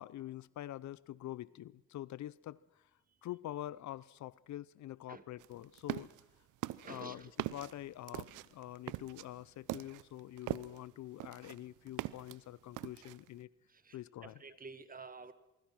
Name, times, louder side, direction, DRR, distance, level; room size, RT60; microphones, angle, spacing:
voice 1, 0.0-2.8 3.2-6.1 6.8-13.5 13.9-14.4, left 13 dB, 70° left, 20 dB, 0.7 m, -46 dB
sound 1, 5.4-6.2 6.6-10.9 11.2-12.4 12.7-13.3, right 16 dB, 85° right, 0.7 m, -41 dB
voice 2, 6.9-7.3 13.8-14.0 14.2-15.3, right 4 dB, 30° right, 11 dB, 1.9 m, -49 dB
23.5 x 23.5 x 6.1 m, 0.94 s
cardioid pair, 90°, 30 cm